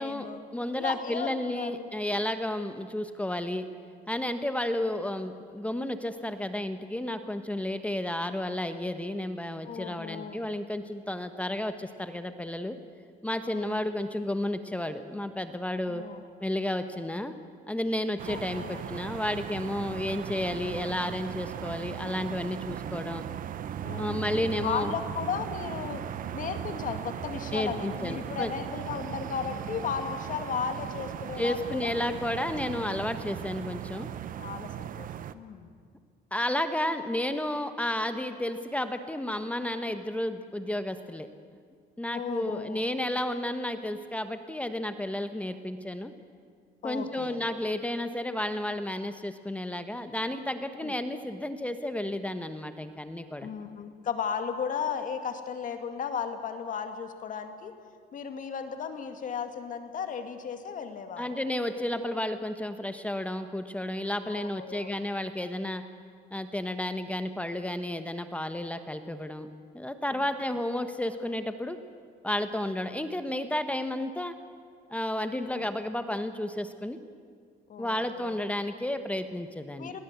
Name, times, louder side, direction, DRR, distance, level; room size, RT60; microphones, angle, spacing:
voice 1, 0.0-0.4 0.8-1.9 9.6-10.4 13.5-13.9 15.9-16.2 18.3-18.8 23.8-26.0 26.3-31.9 32.4-33.1 34.4-35.1 35.3-35.7 42.1-42.8 46.8-47.4 50.8-50.9 53.4-57.7 58.1-61.3 64.2-64.9 70.1-70.3 75.3-75.7 77.7-78.4 79.8-80.0, left 7 dB, 50° left, 7 dB, 2.1 m, -35 dB
voice 2, 0.5-3.7 4.1-12.8 13.2-16.0 16.4-17.3 17.7-23.2 24.0-24.9 27.5-28.5 31.4-34.1 36.3-41.3 42.0-46.1 46.8-53.5 61.2-65.8 66.3-69.5 69.7-71.8 72.2-74.3 74.9-77.0 77.8-79.9, left 1 dB, 10° left, 9 dB, 1.1 m, -32 dB
sound 1, 18.2-35.3, right 10 dB, 55° right, 0.9 m, -38 dB
21.5 x 17.5 x 8.2 m, 2.1 s
cardioid pair, 110°, 17 cm